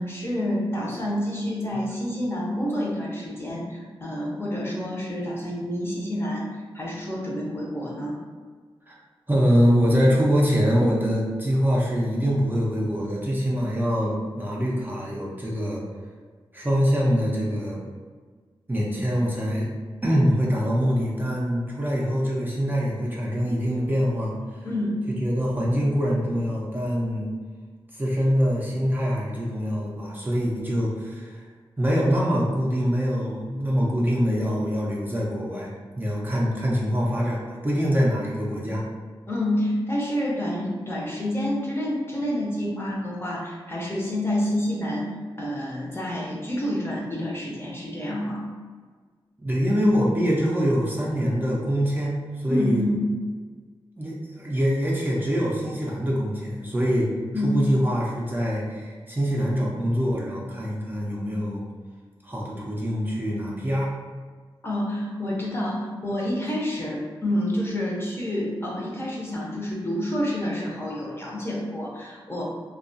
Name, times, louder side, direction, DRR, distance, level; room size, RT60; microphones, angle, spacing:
voice 1, 0.0-6.5 6.7-8.1 24.6-25.0 39.3-45.1 45.4-48.5 52.5-53.1 57.3-57.6 64.6-72.4, left 1 dB, 25° left, -4 dB, 0.6 m, -28 dB
voice 2, 9.3-15.8 16.5-17.8 18.7-19.7 20.0-24.3 25.2-27.3 27.9-31.4 31.8-38.8 49.4-52.8 54.0-57.1 57.4-61.7 62.2-63.9, equal, 20° right, -4 dB, 0.5 m, -24 dB
2.3 x 2.2 x 2.6 m, 1.5 s
cardioid pair, 60°, 10 cm